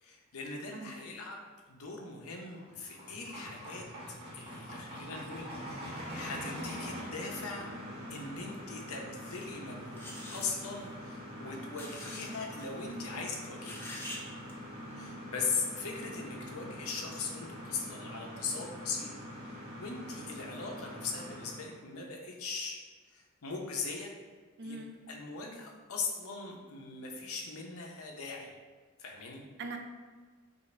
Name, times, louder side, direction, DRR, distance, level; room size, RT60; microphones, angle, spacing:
voice 1, 0.0-3.9 4.3-7.7 8.1-13.8 15.0-19.1 19.4-22.8 23.1-24.1 24.6-24.8 25.1-28.5 29.0-29.4, left 4 dB, 75° left, 0 dB, 0.7 m, -40 dB
sound 1, 2.4-21.8, equal, 25° right, 0.9 m, -44 dB
sound 2, 9.3-9.5 10.0-10.5 11.7-12.3 12.5-12.6 13.6-14.2 14.5-14.6, left 1 dB, 10° left, 0.5 m, -44 dB
voice 2, 24.6-24.9 29.6-29.8, right 3 dB, 55° right, 4 dB, 0.5 m, -42 dB
5.4 x 2.5 x 3.3 m, 1.4 s
head